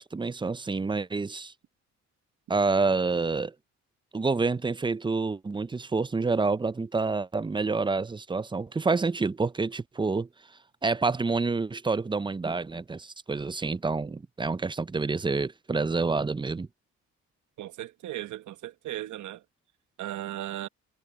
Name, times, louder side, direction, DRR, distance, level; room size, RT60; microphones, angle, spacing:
voice 1, 0.0-1.5 2.5-3.5 4.1-10.3 10.8-16.7, right 4 dB, 15° right, 0.6 m, -28 dB
voice 2, 17.6-19.4 20.0-20.7, right 13 dB, 75° right, 1.1 m, -36 dB
cardioid pair, 90°, 30 cm